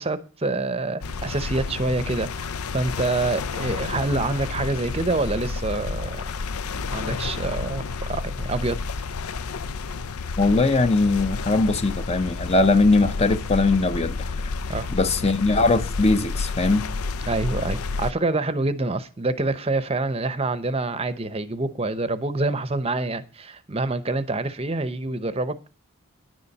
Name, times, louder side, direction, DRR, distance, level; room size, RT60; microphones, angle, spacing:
voice 1, 0.0-6.2 6.9-8.8 14.7-14.9 17.3-25.7, right 2 dB, 25° right, 0.7 m, -26 dB
sound 1, 1.0-18.1, left 4 dB, 90° left, 0.6 m, -30 dB
voice 2, 10.4-14.5 14.9-16.9, left 3 dB, 30° left, 0.7 m, -20 dB
10.5 x 7.0 x 6.5 m
head